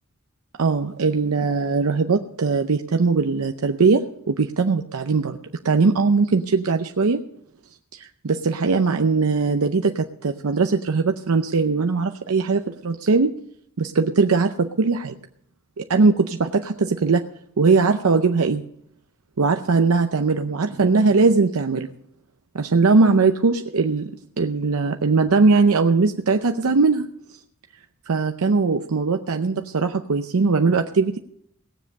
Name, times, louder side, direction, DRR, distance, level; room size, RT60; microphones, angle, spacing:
voice 1, 0.6-5.4 5.6-7.2 7.9-13.3 13.8-15.2 15.8-17.2 17.6-18.6 19.4-21.9 22.5-24.1 24.4-27.1 28.1-31.2, right 4 dB, 70° right, 6 dB, 0.6 m, -20 dB
18.0 x 7.4 x 6.6 m, 0.70 s
head